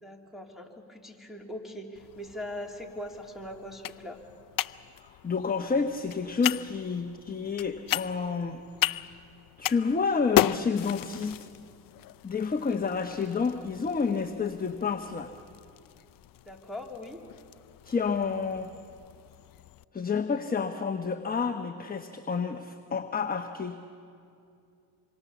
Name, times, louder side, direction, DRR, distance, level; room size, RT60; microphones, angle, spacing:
voice 1, 0.0-4.2 16.5-17.2, left 1 dB, ahead, 3 dB, 3.2 m, -41 dB
sound 1, 2.0-19.8, left 14 dB, 50° left, 0.6 m, -36 dB
voice 2, 5.0-8.6 9.6-11.5 12.2-15.3 17.8-18.7 19.9-23.8, left 5 dB, 20° left, 6 dB, 1.1 m, -29 dB
27.0 x 24.5 x 7.1 m, 2.5 s
supercardioid pair, 90°, 45 cm